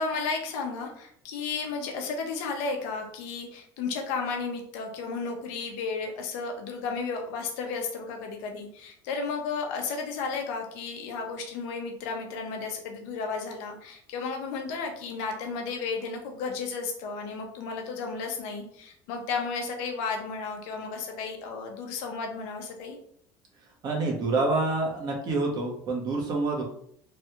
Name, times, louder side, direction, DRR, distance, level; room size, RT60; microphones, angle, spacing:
voice 1, 0.0-23.0, left 4 dB, 75° left, 3 dB, 0.8 m, -33 dB
voice 2, 23.8-26.6, right 3 dB, 45° right, 1 dB, 1.0 m, -27 dB
3.3 x 2.3 x 2.9 m, 0.66 s
supercardioid pair, 100°, 10 cm